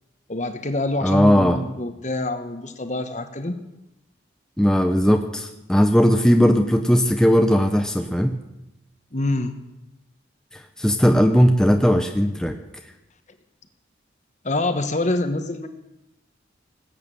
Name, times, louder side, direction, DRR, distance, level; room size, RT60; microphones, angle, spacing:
voice 1, 0.3-3.5 9.1-9.5 14.4-15.7, left 2 dB, 40° left, 9 dB, 1.2 m, -25 dB
voice 2, 1.0-1.6 4.6-8.4 10.5-12.5, equal, 5° left, 5 dB, 0.7 m, -18 dB
19.0 x 9.0 x 7.5 m, 0.95 s
head